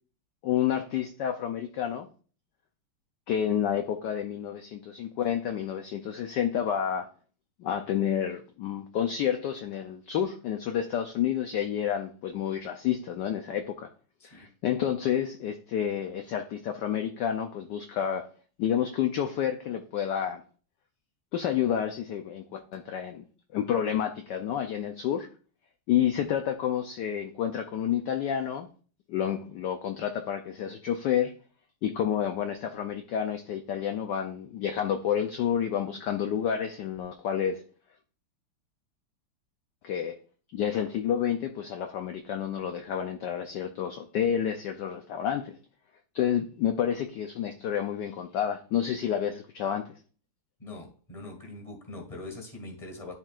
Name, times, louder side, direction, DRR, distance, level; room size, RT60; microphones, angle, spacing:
voice 1, 0.4-2.1 3.3-7.1 7.6-13.9 14.2-18.2 18.6-20.4 21.3-23.2 23.5-25.3 25.9-28.7 29.1-31.3 31.8-37.6 39.8-40.1 40.5-45.5 46.1-49.8, left 9 dB, 70° left, 6 dB, 1.1 m, -29 dB
voice 2, 50.6-53.1, left 2 dB, 15° left, 3 dB, 1.7 m, -42 dB
11.5 x 4.5 x 2.4 m, 0.39 s
omnidirectional pair, 2.4 m